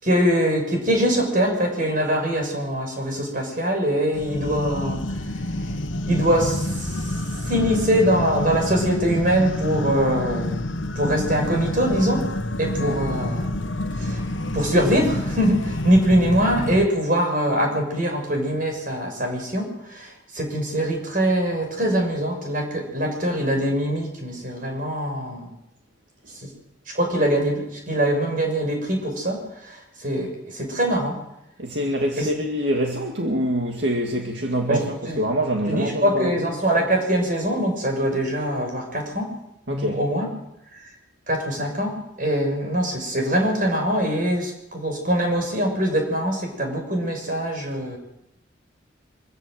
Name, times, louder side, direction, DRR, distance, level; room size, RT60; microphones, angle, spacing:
voice 1, 0.0-5.0 6.1-7.1 7.4-10.6 10.9-12.3 12.6-13.5 14.0-14.3 14.5-25.5 26.4-26.5 26.9-31.2 32.2-32.3 34.7-35.2 35.7-39.3 39.7-40.3 40.7-40.8 41.3-48.0, equal, 45° right, 6.5 m, -23 dB
sound 1, 4.1-16.8, left 1 dB, 90° left, 1.2 m, -28 dB
voice 2, 31.6-36.3 39.7-40.0, equal, 65° right, 2.1 m, -25 dB
25.0 x 15.0 x 7.8 m
head